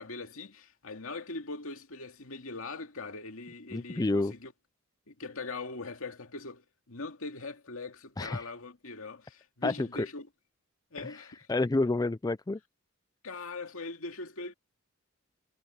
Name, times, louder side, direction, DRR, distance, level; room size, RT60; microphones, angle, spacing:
voice 1, 0.0-4.5 5.1-10.3 10.9-11.5 13.2-14.5, left 3 dB, 75° left, 2.2 m, -41 dB
voice 2, 3.7-4.3 8.2-8.5 9.6-10.1 11.0-11.2 11.5-12.6, left 2 dB, 15° left, 0.3 m, -29 dB
head